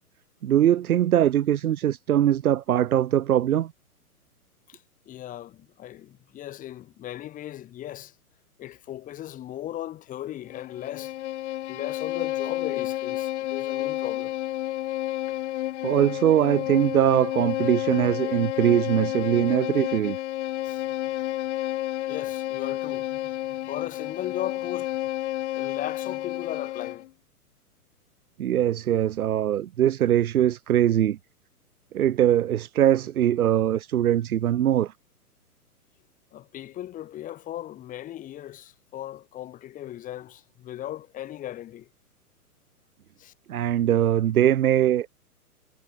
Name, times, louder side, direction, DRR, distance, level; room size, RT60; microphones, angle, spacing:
voice 1, 0.4-3.7 15.8-20.2 28.4-31.2 31.9-34.9 43.5-45.1, right 11 dB, 70° right, 0.9 m, -22 dB
voice 2, 4.7-8.1 8.6-11.2 11.7-14.3 20.6-20.8 21.2-21.3 22.1-23.2 23.5-25.0 25.5-27.1 36.3-41.9 43.2-43.3, left 12 dB, 15° left, 1.5 m, -37 dB
Bowed string instrument, 10.5-27.1, left 15 dB, 45° left, 2.0 m, -30 dB
hypercardioid pair, 130°, 46 cm